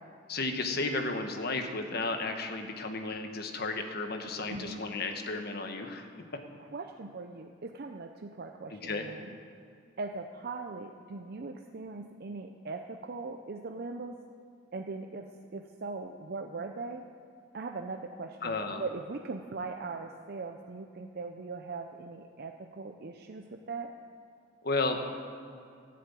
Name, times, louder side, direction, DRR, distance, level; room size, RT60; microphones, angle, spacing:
voice 1, 0.3-6.1 8.8-9.1 18.4-18.8 24.6-25.0, left 3 dB, 55° left, 5 dB, 1.3 m, -33 dB
voice 2, 4.4-4.8 6.6-9.4 10.0-14.2 14.7-15.3 15.5-17.0 17.5-23.9, right 3 dB, 55° right, 4 dB, 0.6 m, -40 dB
13.5 x 7.7 x 8.5 m, 2.4 s
head